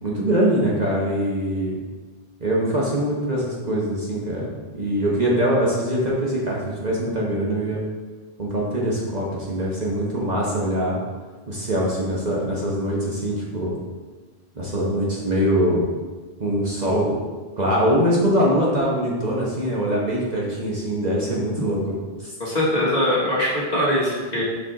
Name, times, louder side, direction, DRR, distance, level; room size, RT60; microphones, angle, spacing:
voice 1, 0.0-1.7 2.4-4.5 4.7-7.8 8.4-11.0 11.5-13.8 14.5-15.8 16.4-17.2 17.6-21.9 22.2-22.3, equal, 40° right, -5 dB, 1.2 m, -23 dB
voice 2, 22.4-24.4, left 1 dB, 40° left, -8 dB, 1.9 m, -22 dB
6.8 x 5.0 x 3.7 m, 1.4 s
omnidirectional pair, 1.1 m